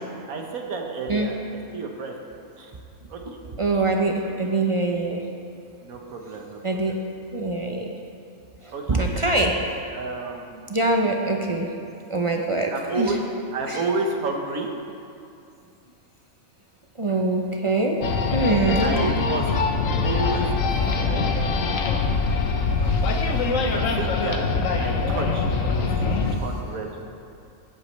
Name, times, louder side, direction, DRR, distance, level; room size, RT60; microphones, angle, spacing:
voice 1, 0.3-1.3 1.7-2.1 2.6-2.7 3.1-3.2 4.4-4.5 5.8-7.0 8.7-9.2 9.9-10.7 12.7-13.2 13.5-14.8 18.8-19.4 20.0-21.4 23.6-24.5 24.8-27.0, right 3 dB, 80° right, 1 dB, 1.5 m, -31 dB
voice 2, 3.6-5.3 6.6-7.9 8.6-9.7 10.7-11.8 12.1-13.2 13.7-13.8 17.0-19.1, right 2 dB, 40° right, 1 dB, 0.4 m, -24 dB
sound 1, 18.0-26.4, left 4 dB, 70° left, 1.1 m, -23 dB
15.5 x 8.3 x 3.2 m, 2.5 s
omnidirectional pair, 1.5 m